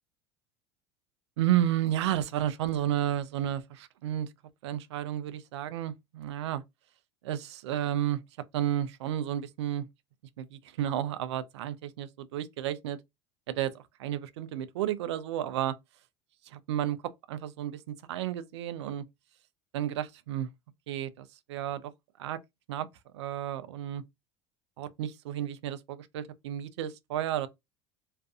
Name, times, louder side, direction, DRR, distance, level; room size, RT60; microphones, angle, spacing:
voice 1, 1.4-4.3 4.6-6.6 7.2-8.2 8.5-9.9 10.4-13.0 13.5-15.8 16.5-17.0 17.3-19.0 19.7-20.5 20.9-21.9 22.2-22.4 22.7-22.9 23.1-24.0 24.8-27.5, right 11 dB, 85° right, 0.4 m, -32 dB
2.5 x 2.4 x 2.3 m
hypercardioid pair, 85°, 14 cm